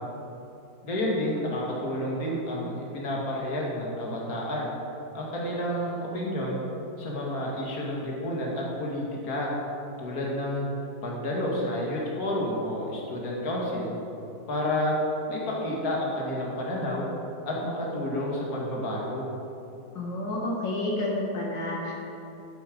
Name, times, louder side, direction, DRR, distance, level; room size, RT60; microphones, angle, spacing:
voice 1, 0.8-4.7 5.1-6.6 7.0-9.5 10.0-10.7 11.0-13.9 14.5-15.0 15.3-17.1 17.4-19.3, left 1 dB, 55° left, -3 dB, 2.4 m, -30 dB
voice 2, 19.9-21.9, left 1 dB, 80° left, -4 dB, 2.5 m, -30 dB
11.5 x 9.9 x 5.2 m, 2.8 s
omnidirectional pair, 2.0 m